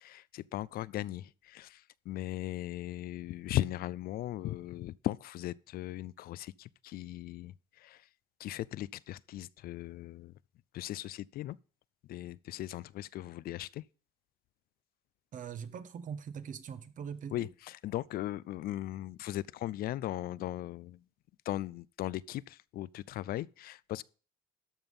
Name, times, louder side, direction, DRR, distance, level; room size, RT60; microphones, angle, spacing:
voice 1, 0.0-8.0 8.4-10.3 10.7-11.6 12.1-13.8 17.3-21.0 21.5-24.0, left 14 dB, 60° left, 0.4 m, -38 dB
voice 2, 15.3-17.5, right 7 dB, 50° right, 1.0 m, -42 dB
13.0 x 5.5 x 5.3 m
cardioid pair, 110°, 17 cm